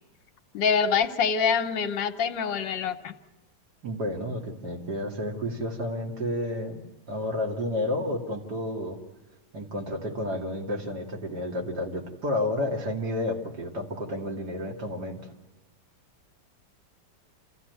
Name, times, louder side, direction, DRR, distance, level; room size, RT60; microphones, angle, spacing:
voice 1, 0.5-3.1, left 6 dB, 75° left, 8 dB, 1.7 m, -25 dB
voice 2, 3.8-6.8 7.1-9.0 9.5-15.3, left 1 dB, 60° right, 1 dB, 3.0 m, -31 dB
27.5 x 15.5 x 9.4 m, 1.1 s
omnidirectional pair, 2.0 m